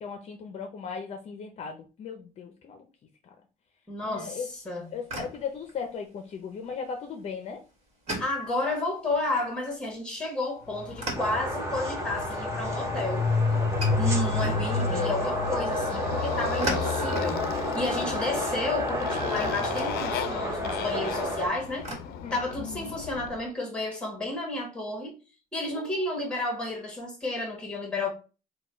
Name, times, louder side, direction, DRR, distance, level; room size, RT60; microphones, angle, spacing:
voice 1, 0.0-2.8 4.0-4.5 4.9-7.6 14.4-15.2 22.1-23.0 25.7-26.0, left 6 dB, 45° left, 0.6 m, -37 dB
voice 2, 3.9-4.9 8.2-13.3 14.0-17.5 17.7-21.9 22.3-25.1 25.5-28.1, left 2 dB, 5° left, 1.4 m, -31 dB
sound 1, 4.5-22.0, right 1 dB, 40° right, 1.5 m, -42 dB
Motorcycle, 10.7-23.4, left 5 dB, 85° left, 0.5 m, -31 dB
sound 2, 11.2-21.5, right 1 dB, 20° right, 0.8 m, -31 dB
4.3 x 2.3 x 4.4 m
cardioid pair, 170°, 16 cm